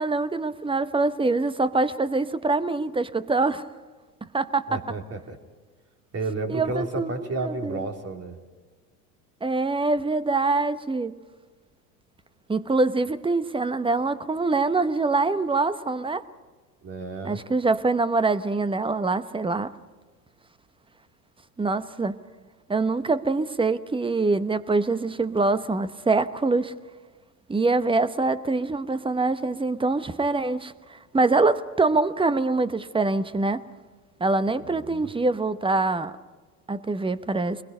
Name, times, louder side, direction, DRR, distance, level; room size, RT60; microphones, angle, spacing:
voice 1, 0.0-3.6 4.3-4.7 6.5-7.1 7.4-7.8 9.4-11.1 12.5-16.2 17.2-19.7 21.6-22.1 22.7-26.7 27.5-33.6 34.2-36.1 36.7-37.6, right 3 dB, 10° right, 14 dB, 1.0 m, -24 dB
voice 2, 4.7-5.4 6.1-8.4 16.8-17.4 34.5-35.1, right 2 dB, 30° right, 4 dB, 3.2 m, -32 dB
23.5 x 21.0 x 5.5 m, 1.4 s
hypercardioid pair, 80°, 48 cm